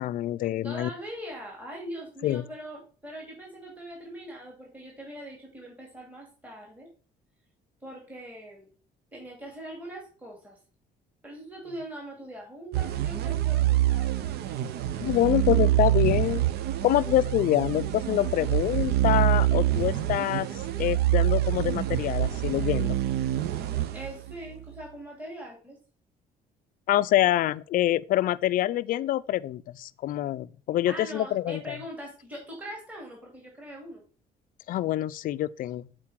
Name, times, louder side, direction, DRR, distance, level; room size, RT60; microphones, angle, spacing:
voice 1, 0.0-0.9 2.2-2.5 15.0-16.4 16.8-20.5 20.8-23.0 26.9-31.8 34.7-35.9, left 13 dB, 55° left, 0.4 m, -26 dB
voice 2, 0.6-6.9 7.8-8.7 9.1-10.6 11.2-14.3 23.9-25.8 30.9-34.0, right 1 dB, 10° right, 2.4 m, -41 dB
sound 1, 12.7-24.6, right 13 dB, 75° right, 0.7 m, -26 dB
7.3 x 4.4 x 4.7 m
cardioid pair, 110°, 17 cm